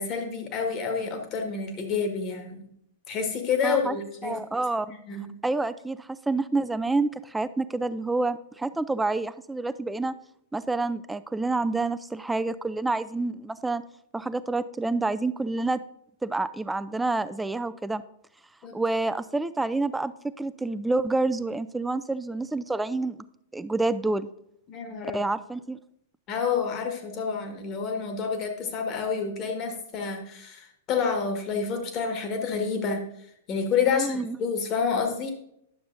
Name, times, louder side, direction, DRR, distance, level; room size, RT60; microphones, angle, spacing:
voice 1, 0.0-2.7 3.1-4.4 4.9-5.3 18.6-18.7 24.7-25.3 26.3-33.1 33.5-35.3, left 5 dB, 35° left, 4 dB, 1.5 m, -29 dB
voice 2, 3.6-4.0 4.2-4.9 5.4-10.1 10.5-13.8 14.1-15.8 16.2-18.0 18.7-20.1 20.4-23.2 23.5-24.3 25.1-25.8 33.9-34.4, right 3 dB, 5° right, 14 dB, 0.3 m, -28 dB
11.0 x 6.7 x 2.6 m, 0.74 s
figure-of-eight pair, 105°, 0 cm